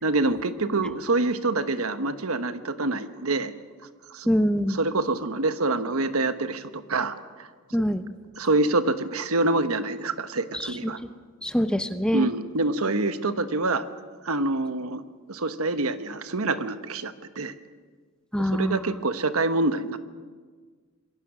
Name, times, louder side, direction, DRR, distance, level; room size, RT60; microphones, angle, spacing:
voice 1, 0.0-3.5 4.1-4.3 4.7-7.5 8.4-11.0 12.1-13.8 14.2-15.0 15.3-17.5 18.4-20.0, right 2 dB, 75° right, 10 dB, 1.2 m, -26 dB
voice 2, 4.3-4.8 7.7-8.0 10.5-10.9 11.4-12.3 18.3-18.9, equal, 5° left, 10 dB, 0.9 m, -24 dB
26.5 x 22.0 x 6.2 m, 1.5 s
head